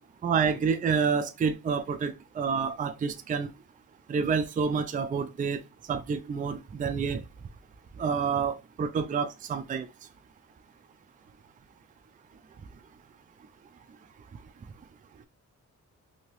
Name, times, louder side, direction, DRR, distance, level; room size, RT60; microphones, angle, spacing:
voice 1, 0.2-3.5 4.1-5.6 5.9-7.2 8.0-9.9, right 6 dB, 25° right, 0.4 m, -28 dB
2.8 x 2.8 x 3.0 m
cardioid pair, 85°, 31 cm